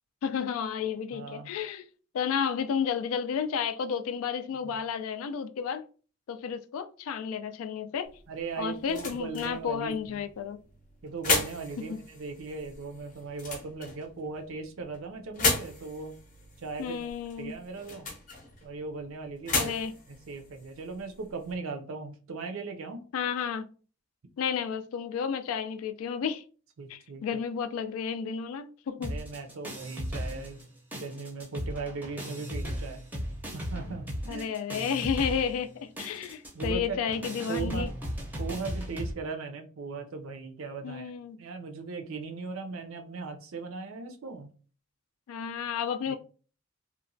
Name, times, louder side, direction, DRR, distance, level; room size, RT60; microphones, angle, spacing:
voice 1, 0.2-1.8 2.1-5.8 6.3-8.1 8.6-10.6 11.9-12.0 16.8-17.5 19.5-19.9 23.1-23.7 24.4-26.4 26.9-29.2 34.3-37.9 40.8-41.4 45.3-46.2, left 7 dB, 85° left, 0.3 m, -32 dB
voice 2, 1.1-1.5 4.6-4.8 8.3-10.3 11.0-16.2 16.6-17.0 17.4-18.1 18.6-19.7 20.1-23.1 26.8-27.2 29.0-30.6 30.9-33.0 33.5-34.5 36.5-37.0 37.5-37.9 38.4-41.1 41.4-44.5 46.1-46.2, right 4 dB, 75° right, 0.5 m, -38 dB
sound 1, 8.0-21.5, left 3 dB, 40° left, 0.6 m, -36 dB
sound 2, 29.0-30.6 30.9-39.1, equal, 10° right, 0.5 m, -36 dB
2.9 x 2.1 x 2.6 m
head